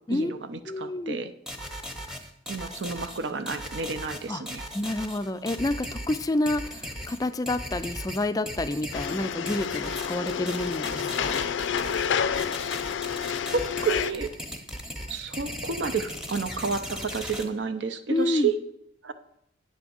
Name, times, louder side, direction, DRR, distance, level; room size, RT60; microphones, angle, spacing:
voice 1, 0.1-1.3 2.5-4.6 13.5-14.3 15.1-18.6 19.0-19.1, right 5 dB, 70° right, 10 dB, 0.6 m, -30 dB
voice 2, 0.7-1.2 4.3-4.4 4.7-11.4 18.1-18.5, left 2 dB, 20° left, 10 dB, 0.4 m, -29 dB
sound 1, 1.5-17.4, equal, 5° right, 0.8 m, -38 dB
sound 2, 8.9-14.1, left 7 dB, 80° left, 0.4 m, -29 dB
8.8 x 3.6 x 6.9 m, 0.76 s
head